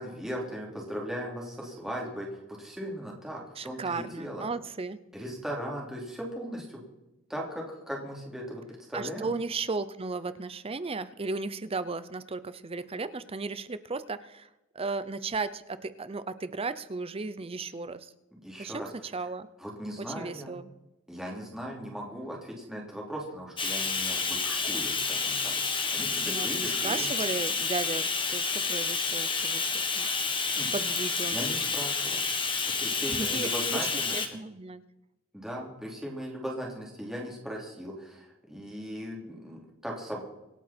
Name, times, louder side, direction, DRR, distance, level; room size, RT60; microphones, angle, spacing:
voice 1, 0.0-4.5 5.1-6.8 7.3-8.6 8.9-9.3 18.4-18.9 19.6-20.6 21.1-27.1 30.6-30.7 31.2-32.3 32.8-34.2 35.3-40.2, equal, ahead, -3 dB, 3.2 m, -38 dB
voice 2, 3.6-5.0 8.9-14.5 14.7-18.1 18.6-19.5 20.0-20.7 26.2-29.7 29.9-30.1 30.7-31.4 33.0-33.5 34.1-34.8, right 3 dB, 25° right, 14 dB, 0.6 m, -35 dB
Bathtub (filling or washing), 23.6-34.3, left 4 dB, 25° left, 1.5 m, -29 dB
26.0 x 9.0 x 4.4 m, 0.95 s
head